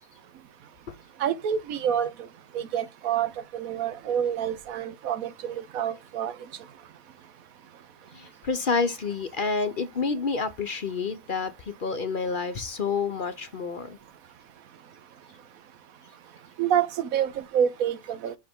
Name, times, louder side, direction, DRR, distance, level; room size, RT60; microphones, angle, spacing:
voice 1, 1.2-2.1 2.5-6.3 16.6-18.3, right 9 dB, 90° right, 1.2 m, -27 dB
voice 2, 8.1-14.0, left 4 dB, 45° left, 0.8 m, -29 dB
6.2 x 5.0 x 3.6 m
omnidirectional pair, 1.4 m